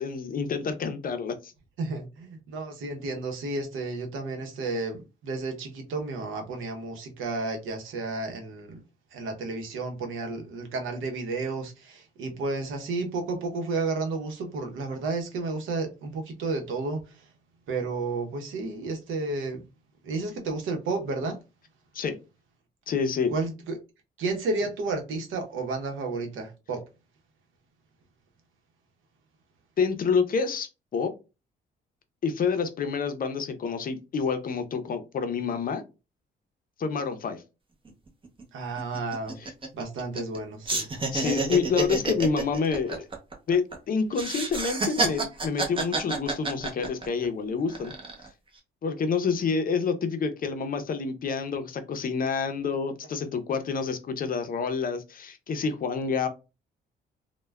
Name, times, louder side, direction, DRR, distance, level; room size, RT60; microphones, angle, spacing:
voice 1, 0.0-1.5 21.9-22.2 22.9-23.3 29.8-31.1 32.2-35.8 36.8-37.4 39.4-39.5 41.1-43.1 43.5-47.9 48.8-56.3, left 5 dB, 45° left, 0.5 m, -28 dB
voice 2, 1.8-8.8 9.1-17.2 17.7-19.6 20.0-21.4 23.3-23.8 24.2-26.8 38.5-39.4 39.7-41.0, right 3 dB, 80° right, 0.8 m, -32 dB
sound 1, 37.9-38.0 38.2-38.4 38.8-40.4 40.7-43.8 44.1-47.3 47.7-48.3, right 3 dB, 25° right, 0.8 m, -29 dB
3.2 x 2.2 x 2.2 m
cardioid pair, 90°, 20 cm